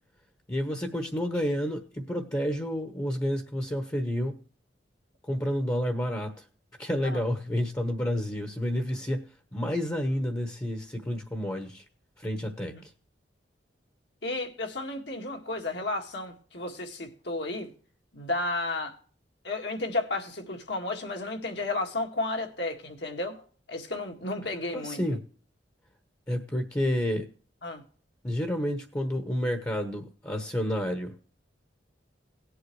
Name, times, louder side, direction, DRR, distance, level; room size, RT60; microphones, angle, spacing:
voice 1, 0.5-4.4 5.2-6.3 6.8-9.2 9.5-11.8 12.2-12.7 24.7-25.2 26.3-27.3 28.2-31.1, equal, 20° left, 1.1 m, -30 dB
voice 2, 14.2-17.7 18.1-18.9 19.4-23.4 23.7-25.0 27.6-27.8, left 2 dB, 65° left, 2.0 m, -33 dB
18.0 x 8.1 x 3.2 m
head